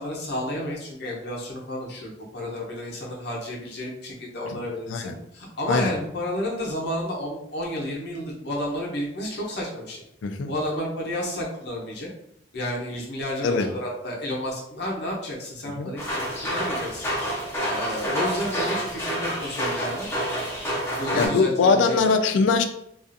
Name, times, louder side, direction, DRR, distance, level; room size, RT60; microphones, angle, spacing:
voice 1, 0.0-10.0 10.5-12.1 12.5-17.1 17.3-20.1 21.0-22.1, left 1 dB, 60° left, -3 dB, 0.7 m, -31 dB
sound 1, 16.0-21.3, equal, 15° left, 0.5 m, -28 dB
voice 2, 21.1-22.6, left 4 dB, 85° left, 7 dB, 0.3 m, -21 dB
2.4 x 2.4 x 2.5 m, 0.76 s
head